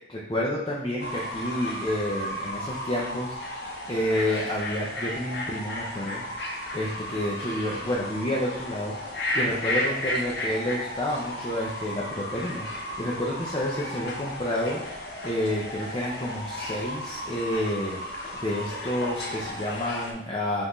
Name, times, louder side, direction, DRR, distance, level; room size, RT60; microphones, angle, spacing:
voice 1, 0.1-3.4 3.9-6.2 6.7-9.0 9.3-12.7 13.0-14.8 15.2-20.7, left 1 dB, 25° left, -4 dB, 0.5 m, -29 dB
Fowl / Bird, 1.0-20.1, left 1 dB, 65° left, 0.9 m, -34 dB
5.2 x 2.6 x 3.0 m, 0.78 s
head